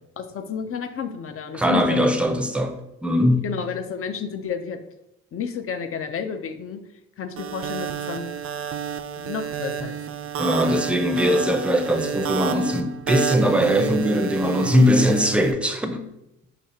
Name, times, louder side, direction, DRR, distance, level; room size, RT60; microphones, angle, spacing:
voice 1, 0.2-2.1 3.4-4.8 5.3-6.8 7.2-8.3 9.2-10.0, left 6 dB, 45° left, 0.6 m, -31 dB
voice 2, 1.5-2.7 3.0-3.5 10.4-16.1, equal, 5° right, 0.6 m, -20 dB
sound 1, 7.4-15.5, right 8 dB, 50° right, 0.4 m, -30 dB
5.1 x 2.4 x 4.2 m
cardioid pair, 90°, 30 cm